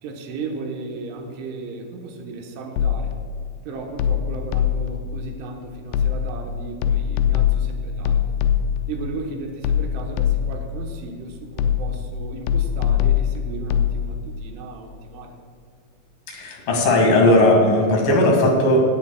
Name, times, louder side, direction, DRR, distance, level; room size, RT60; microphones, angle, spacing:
voice 1, 0.0-3.1 3.7-8.2 8.9-15.4, right 3 dB, 90° right, 2 dB, 3.7 m, -35 dB
sound 1, 2.8-3.3 4.0-5.0 5.9-6.5 6.8-8.9 9.6-10.7 11.6-12.1 12.5-14.0, left 9 dB, 80° left, 2.5 m, -21 dB
voice 2, 16.3-18.8, left 1 dB, 55° left, 0 dB, 3.3 m, -17 dB
17.0 x 13.0 x 2.3 m, 2.4 s
omnidirectional pair, 5.3 m